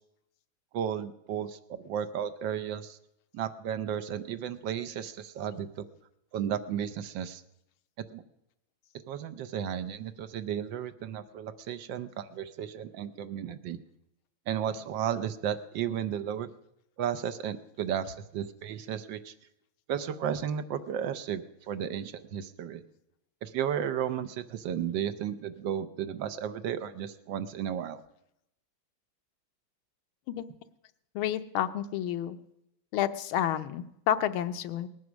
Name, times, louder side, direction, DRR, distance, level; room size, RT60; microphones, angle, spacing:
voice 1, 0.7-3.0 3.3-5.9 6.3-7.4 8.1-8.2 9.1-13.8 14.5-16.5 17.0-19.3 19.9-22.8 23.4-28.0, right 9 dB, 70° right, 11 dB, 1.3 m, -34 dB
voice 2, 31.1-32.4 32.9-34.9, left 10 dB, 85° left, 10 dB, 1.6 m, -30 dB
19.0 x 9.4 x 6.2 m, 0.81 s
omnidirectional pair, 2.2 m